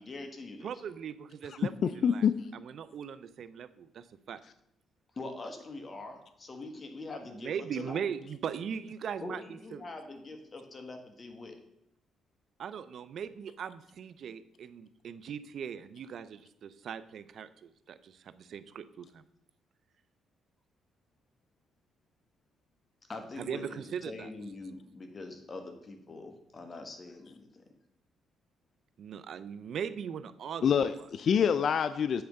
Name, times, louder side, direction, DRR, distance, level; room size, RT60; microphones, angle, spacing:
voice 1, 0.0-0.7 5.1-8.0 9.2-11.6 23.1-27.6, left 2 dB, 35° left, 5 dB, 1.3 m, -43 dB
voice 2, 0.6-2.3 2.5-4.4 7.3-9.9 12.6-19.2 23.4-24.3 29.0-30.6, right 7 dB, 65° right, 14 dB, 0.5 m, -39 dB
voice 3, 1.8-2.5 30.6-32.2, left 7 dB, 55° left, 12 dB, 0.3 m, -26 dB
7.9 x 3.4 x 6.5 m, 0.78 s
cardioid pair, 90°, 0 cm